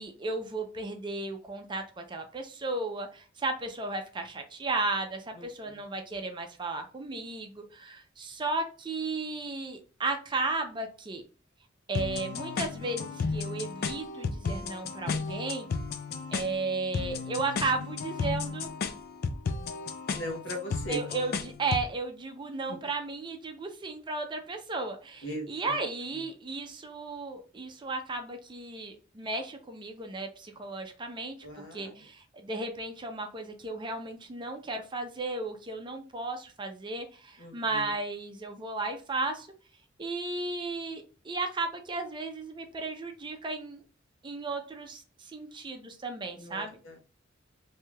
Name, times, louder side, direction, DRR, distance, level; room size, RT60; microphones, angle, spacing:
voice 1, 0.0-11.2 11.9-15.7 16.3-18.7 20.9-39.5 40.0-43.8 44.2-46.8, right 3 dB, 25° right, 5 dB, 0.5 m, -34 dB
voice 2, 5.3-5.8 20.1-21.0 22.7-22.8 25.2-25.8 26.1-26.2 31.4-31.9 37.4-38.0 46.3-47.0, equal, 70° left, 1 dB, 0.9 m, -39 dB
sound 1, 11.9-21.9, left 4 dB, 50° left, 0.4 m, -34 dB
3.2 x 2.7 x 2.2 m, 0.36 s
head